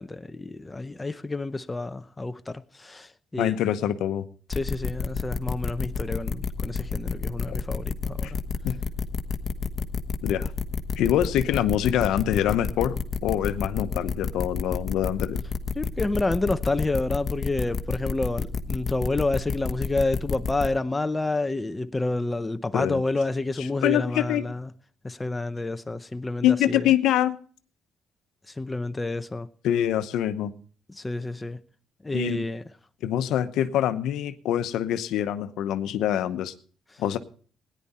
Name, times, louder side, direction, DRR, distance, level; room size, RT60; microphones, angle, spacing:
voice 1, 0.0-3.6 4.5-8.4 15.7-24.7 25.0-26.9 28.5-29.5 30.9-31.6 32.0-32.6, left 2 dB, 15° left, 0.7 m, -29 dB
voice 2, 3.4-4.2 7.5-7.6 8.2-8.3 8.6-8.8 10.2-10.5 11.0-13.0 13.2-15.4 22.7-23.0 23.6-24.5 26.4-27.4 29.6-30.5 32.1-32.4 33.0-36.5 37.0-37.2, left 11 dB, 85° left, 0.8 m, -25 dB
sound 1, 4.5-20.7, left 5 dB, 40° left, 1.2 m, -29 dB
17.5 x 10.0 x 4.2 m
cardioid pair, 90°, 0 cm